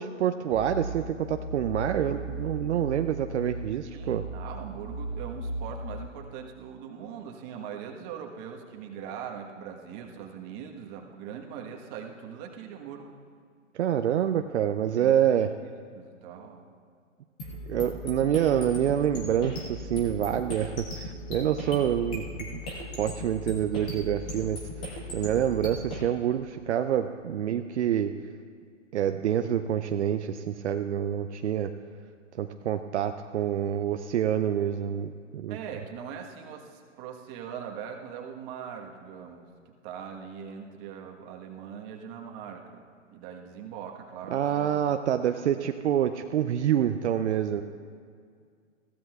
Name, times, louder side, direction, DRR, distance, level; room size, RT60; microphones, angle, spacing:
voice 1, 0.0-4.2 13.7-15.5 17.7-22.6 23.0-24.6 25.1-28.1 28.9-31.7 32.4-35.6 44.3-47.6, right 10 dB, 60° right, 8 dB, 0.6 m, -27 dB
sound 1, 0.5-6.1, right 2 dB, 55° left, 1.7 m, -36 dB
voice 2, 3.8-13.1 15.0-15.4 15.9-16.7 25.1-25.3 35.5-42.8 43.1-44.8, right 7 dB, 25° right, 2 dB, 1.3 m, -41 dB
sound 2, 17.4-26.0, left 1 dB, 10° left, 0.3 m, -38 dB
21.0 x 15.0 x 2.4 m, 2.1 s
hypercardioid pair, 135°, 38 cm